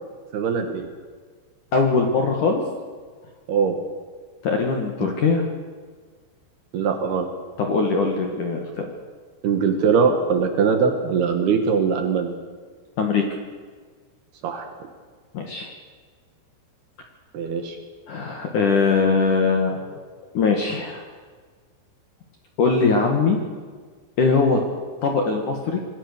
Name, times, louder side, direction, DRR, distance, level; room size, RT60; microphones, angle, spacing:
voice 1, 0.3-0.9 3.5-3.8 6.7-7.3 9.4-12.3 14.4-14.7 17.3-17.8, right 6 dB, 60° right, 5 dB, 3.1 m, -21 dB
voice 2, 1.7-2.6 4.4-5.4 7.6-8.9 13.0-13.2 15.3-15.7 18.1-19.9 20.3-21.0 22.6-23.4 24.2-24.6 25.0-25.8, left 4 dB, 55° left, 2 dB, 2.5 m, -21 dB
26.5 x 20.5 x 6.7 m, 1.5 s
omnidirectional pair, 5.9 m